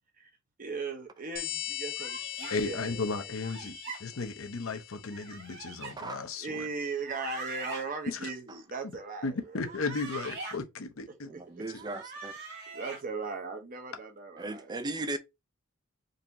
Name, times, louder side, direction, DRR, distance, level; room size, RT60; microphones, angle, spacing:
voice 1, 0.6-3.3 3.6-3.7 6.4-9.7 11.1-11.8 12.7-14.7, right 4 dB, 40° right, 0.8 m, -38 dB
sound 1, 1.4-5.6, left 11 dB, 45° left, 0.4 m, -40 dB
sound 2, 1.9-2.6 3.4-4.0 5.1-5.9 7.0-7.8 9.5-10.6 11.7-13.0, right 3 dB, 60° right, 1.6 m, -42 dB
voice 2, 2.5-6.7 8.1-8.3 9.2-11.3 11.7-11.8, left 3 dB, 75° left, 0.7 m, -35 dB
voice 3, 11.3-12.3 14.4-15.2, right 2 dB, 20° right, 0.4 m, -37 dB
3.9 x 2.9 x 2.6 m
head